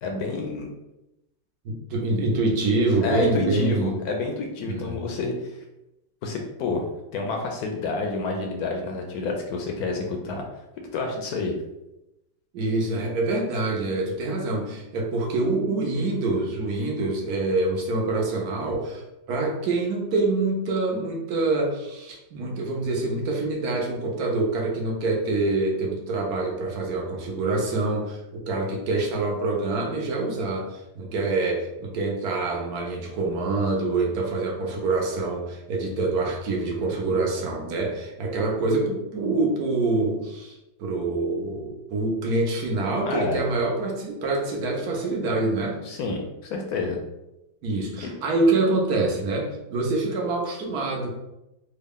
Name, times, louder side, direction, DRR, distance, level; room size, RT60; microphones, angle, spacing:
voice 1, 0.0-0.7 3.0-5.6 6.2-6.8 7.1-10.5 10.9-11.5 43.0-43.4 45.8-47.0 48.0-48.1, left 3 dB, 70° left, 2 dB, 0.9 m, -29 dB
voice 2, 1.6-4.0 4.6-5.0 12.5-45.8 47.6-51.1, right 2 dB, 65° right, 0 dB, 1.1 m, -26 dB
3.6 x 2.3 x 3.5 m, 0.92 s
omnidirectional pair, 2.0 m